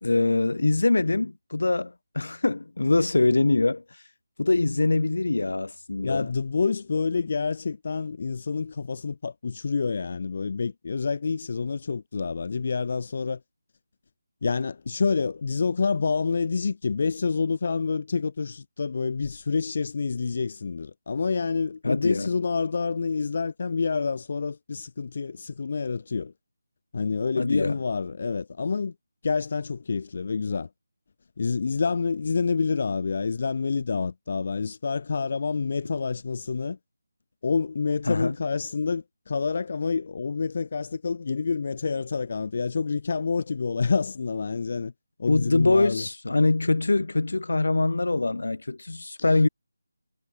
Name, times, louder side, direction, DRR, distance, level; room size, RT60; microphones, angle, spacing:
voice 1, 0.0-3.8 4.4-6.3 21.8-22.3 27.4-27.8 38.1-38.3 45.3-49.5, left 2 dB, 80° left, 0.7 m, -23 dB
voice 2, 6.0-13.4 14.4-26.3 26.9-28.9 29.2-30.7 31.4-36.8 37.4-44.9 45.2-46.0, left 5 dB, 40° left, 0.4 m, -28 dB
figure-of-eight pair, 170°, 0 cm